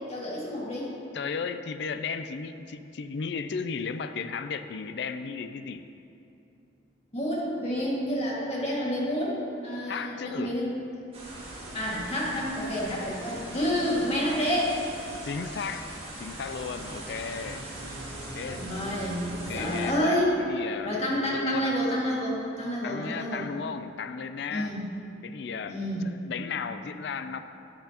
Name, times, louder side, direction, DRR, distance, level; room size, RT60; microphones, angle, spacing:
voice 1, 0.1-0.9 7.1-9.4 9.6-10.7 11.7-14.7 18.5-20.5 20.8-23.4 24.5-24.8 25.7-26.0, equal, 35° left, -5 dB, 2.0 m, -29 dB
voice 2, 1.1-5.9 9.9-10.6 15.2-15.9 16.2-17.6 18.3-18.7 19.3-21.8 22.8-24.7 25.2-27.4, left 5 dB, 60° left, 10 dB, 0.4 m, -35 dB
sound 1, 11.1-19.9, right 1 dB, 30° right, 2.0 m, -41 dB
sound 2, 16.1-20.5, equal, 65° right, 1.8 m, -43 dB
13.5 x 8.8 x 2.9 m, 2.7 s
head